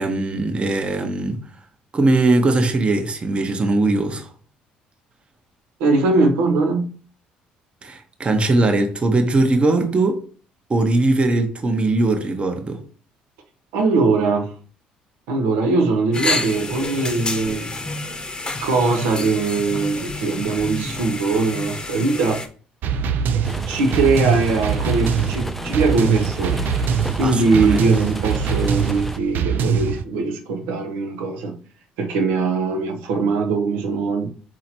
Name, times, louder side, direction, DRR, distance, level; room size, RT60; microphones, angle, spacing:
voice 1, 0.0-1.5 1.9-4.3 7.8-10.2 10.7-12.8 27.2-27.8, right 2 dB, 30° right, 0.9 m, -20 dB
voice 2, 5.8-6.9 13.7-14.5 15.3-17.9 18.6-22.5 23.3-26.6 27.2-31.5 32.0-34.3, right 3 dB, 85° right, 0.8 m, -21 dB
sound 1, 16.1-22.5, left 2 dB, 25° left, 0.8 m, -28 dB
sound 2, 22.8-30.0, right 7 dB, 65° right, 0.4 m, -23 dB
sound 3, 23.4-29.2, left 1 dB, 5° left, 0.4 m, -33 dB
4.2 x 2.8 x 4.3 m
supercardioid pair, 70°, 4 cm